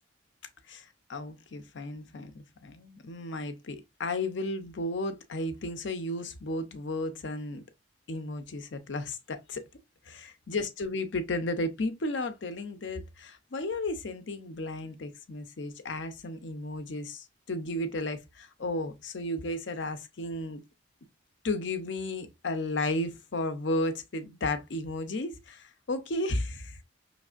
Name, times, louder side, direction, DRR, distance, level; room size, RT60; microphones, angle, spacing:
voice 1, 0.7-7.6 8.1-9.6 10.1-20.6 21.4-26.8, left 2 dB, 65° left, 0.6 m, -34 dB
5.2 x 3.2 x 2.4 m
head